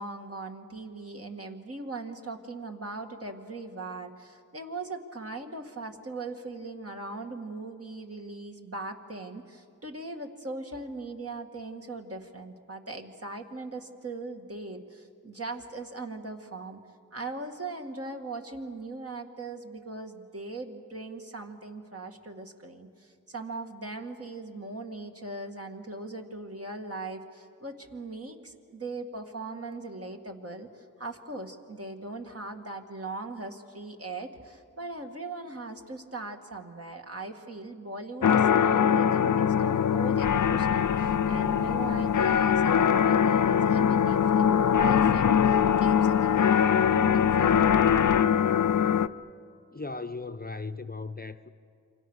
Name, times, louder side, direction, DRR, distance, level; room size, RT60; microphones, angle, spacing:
voice 1, 0.0-16.8 17.1-47.8, right 3 dB, 45° right, 2.3 m, -39 dB
sound 1, 38.2-49.1, left 8 dB, 65° left, 0.6 m, -22 dB
voice 2, 49.7-51.5, left 3 dB, 25° left, 0.8 m, -37 dB
28.0 x 25.5 x 6.5 m
wide cardioid pair, 60°, 33 cm